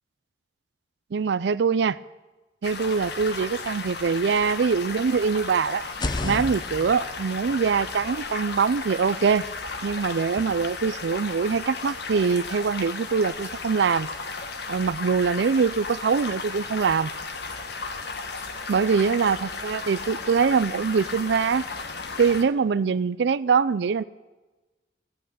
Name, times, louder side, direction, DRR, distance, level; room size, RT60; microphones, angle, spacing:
voice 1, 1.1-2.0 2.6-5.8 6.2-9.5 9.8-14.1 14.7-17.1 18.7-21.6 22.2-24.0, right 5 dB, 70° right, 15 dB, 0.4 m, -23 dB
sound 1, 2.6-22.4, left 4 dB, 65° left, 1.4 m, -35 dB
sound 2, 5.8-9.7, left 2 dB, 25° left, 0.5 m, -35 dB
15.0 x 8.8 x 9.2 m, 1.2 s
head